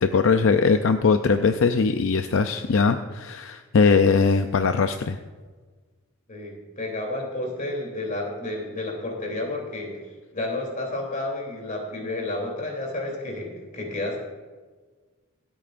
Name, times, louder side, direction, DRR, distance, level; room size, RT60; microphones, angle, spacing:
voice 1, 0.0-5.2, left 5 dB, 65° left, 8 dB, 0.5 m, -20 dB
voice 2, 6.3-9.9 10.3-14.2, left 2 dB, 40° left, 0 dB, 3.2 m, -31 dB
26.0 x 8.6 x 2.5 m, 1.4 s
head